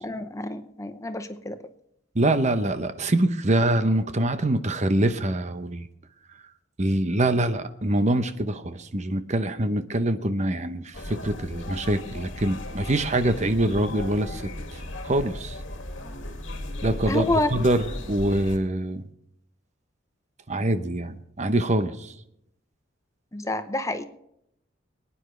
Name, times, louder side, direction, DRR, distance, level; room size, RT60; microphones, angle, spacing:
voice 1, 0.0-1.6 17.1-17.5 23.3-24.0, left 1 dB, 15° left, 9 dB, 0.8 m, -28 dB
voice 2, 2.1-5.9 6.8-14.4 14.7-15.6 16.8-19.0 20.5-22.1, right 1 dB, 40° right, 10 dB, 0.9 m, -24 dB
sound 1, 10.9-18.6, left 1 dB, 75° left, 2.1 m, -36 dB
24.0 x 9.9 x 3.3 m, 0.78 s
head